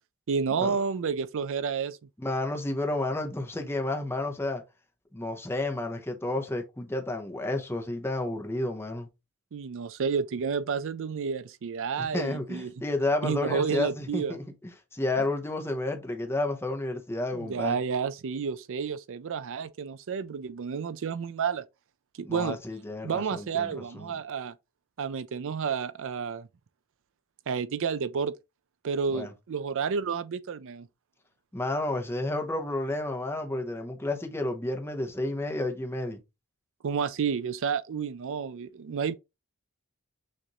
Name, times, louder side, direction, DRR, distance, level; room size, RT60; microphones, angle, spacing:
voice 1, 0.3-2.0 9.5-12.7 13.2-14.4 17.3-21.6 22.1-22.6 23.0-24.5 25.0-26.5 27.5-28.3 28.8-30.9 36.8-39.1, right 6 dB, 60° right, 0.4 m, -30 dB
voice 2, 2.2-4.6 5.1-9.1 12.0-14.4 14.9-17.8 22.2-24.1 29.1-29.3 31.5-36.2, left 2 dB, 10° left, 0.8 m, -31 dB
6.5 x 2.6 x 3.0 m
head